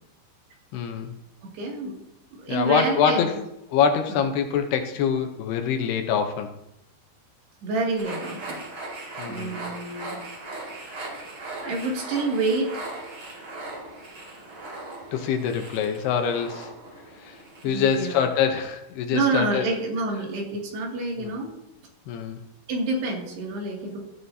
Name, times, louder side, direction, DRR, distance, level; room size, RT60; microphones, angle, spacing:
voice 1, 0.7-1.1 2.5-3.4 3.7-6.5 9.2-9.6 15.1-16.7 17.2-17.4 17.6-19.7 21.2-21.3 22.1-22.4, left 7 dB, 75° left, 5 dB, 2.9 m, -25 dB
voice 2, 1.5-1.9 2.3-3.2 4.1-4.2 7.6-8.6 9.3-10.2 11.6-12.8 17.6-18.2 19.1-21.6 22.7-24.1, right 3 dB, 70° right, -1 dB, 4.5 m, -28 dB
sound 1, 8.0-18.4, right 2 dB, 40° right, 5.3 m, -39 dB
15.0 x 13.0 x 2.8 m, 0.82 s
omnidirectional pair, 4.9 m